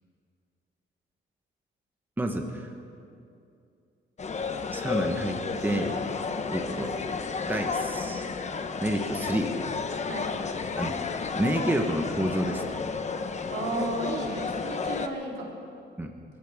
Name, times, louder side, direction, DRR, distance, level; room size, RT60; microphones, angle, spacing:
sound 1, 4.2-15.1, left 5 dB, 35° left, 1.1 m, -32 dB
voice 1, 4.7-6.0 6.5-7.0 7.5-8.3 8.8-9.5 10.8-11.0 11.3-12.8 16.0-16.1, right 1 dB, 10° right, 3 dB, 1.3 m, -29 dB
voice 2, 13.5-15.6, right 2 dB, 75° right, -2 dB, 4.0 m, -34 dB
26.0 x 14.5 x 3.7 m, 2.5 s
cardioid pair, 90°, 20 cm